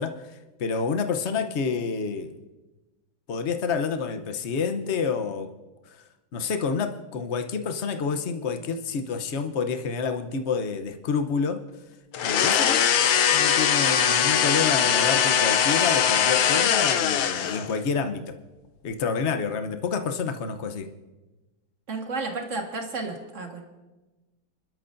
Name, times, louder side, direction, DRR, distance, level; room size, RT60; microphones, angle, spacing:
voice 1, 0.0-2.3 3.3-5.5 5.9-6.0 6.3-11.6 12.2-12.8 13.3-18.4 18.8-20.9, left 5 dB, 50° left, 7 dB, 0.8 m, -28 dB
sound 1, 12.1-17.8, left 8 dB, 70° left, 1.4 m, -21 dB
voice 2, 21.9-23.6, right 3 dB, 40° right, 2 dB, 1.9 m, -32 dB
29.5 x 12.5 x 2.6 m, 1.1 s
omnidirectional pair, 2.3 m